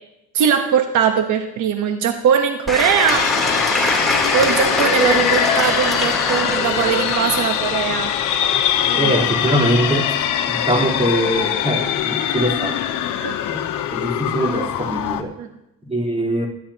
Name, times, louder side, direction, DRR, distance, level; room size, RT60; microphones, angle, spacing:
voice 1, 0.3-3.3 4.3-8.1 8.9-9.1 13.2-13.3 15.4-15.5, right 7 dB, 85° right, 5 dB, 1.3 m, -20 dB
Applause / Crowd, 2.7-9.0, left 1 dB, ahead, 3.5 m, -23 dB
sound 1, 3.1-15.2, left 10 dB, 90° left, 1.0 m, -22 dB
voice 2, 8.9-10.1 10.5-12.8 13.5-13.6 13.9-15.3 15.8-16.5, right 1 dB, 20° right, -3 dB, 4.1 m, -22 dB
25.0 x 12.0 x 3.0 m, 0.85 s
cardioid pair, 90°, 30 cm